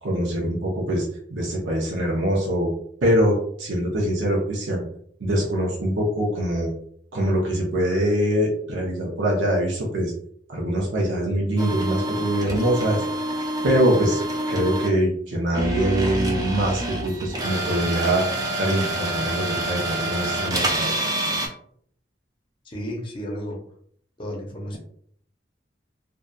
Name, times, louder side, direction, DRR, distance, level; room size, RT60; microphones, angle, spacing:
voice 1, 0.0-2.7 3.0-4.8 5.2-6.7 7.1-10.1 10.5-13.0 13.6-14.2 14.5-18.2 18.6-20.9, right 1 dB, 90° right, -2 dB, 0.6 m, -23 dB
sound 1, 11.6-14.9 15.5-21.5, right 1 dB, 20° right, 0.4 m, -27 dB
voice 2, 22.6-23.6 24.2-24.8, equal, 25° left, -1 dB, 0.5 m, -32 dB
2.6 x 2.2 x 2.2 m, 0.63 s
head